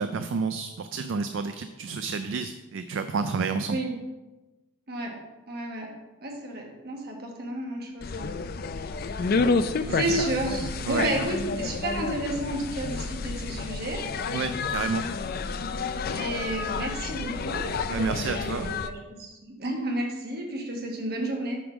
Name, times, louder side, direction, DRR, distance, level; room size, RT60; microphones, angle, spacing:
voice 1, 0.0-3.8 9.9-10.0 10.9-11.1 14.3-15.0 17.9-18.7, right 4 dB, 60° right, 9 dB, 0.3 m, -30 dB
voice 2, 4.9-5.2 5.5-5.9 6.2-8.4 9.9-14.0 16.1-17.7 18.0-21.6, right 1 dB, 45° right, 1 dB, 1.3 m, -32 dB
sound 1, 8.0-18.9, left 4 dB, 45° left, 0.3 m, -30 dB
8.4 x 3.7 x 5.9 m, 1.1 s
head